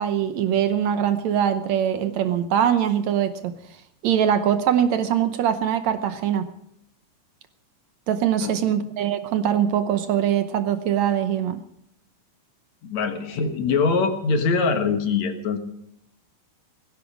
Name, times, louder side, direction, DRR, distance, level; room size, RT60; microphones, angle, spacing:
voice 1, 0.0-3.5 4.0-6.5 8.1-11.6, right 9 dB, 70° right, 10 dB, 1.9 m, -22 dB
voice 2, 8.4-8.8 12.8-15.6, left 4 dB, 65° left, 7 dB, 2.6 m, -23 dB
17.5 x 15.5 x 5.1 m, 0.73 s
omnidirectional pair, 3.6 m